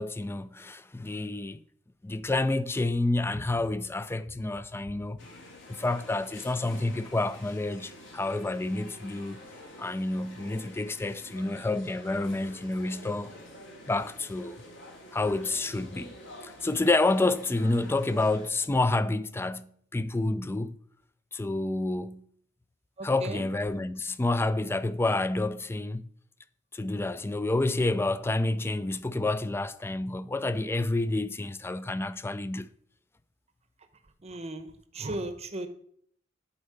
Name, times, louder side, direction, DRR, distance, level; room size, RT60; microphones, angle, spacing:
voice 1, 0.0-1.6 2.0-5.2 5.7-9.4 9.8-13.3 13.9-14.6 15.1-16.1 16.4-20.8 21.3-22.2 23.0-26.1 26.7-32.7, left 2 dB, 10° left, 0.3 m, -29 dB
sound 1, 5.2-18.5, left 1 dB, 65° left, 2.3 m, -48 dB
voice 2, 23.0-23.4 34.2-35.7, right 2 dB, 35° right, 0.8 m, -36 dB
8.3 x 4.3 x 6.7 m
head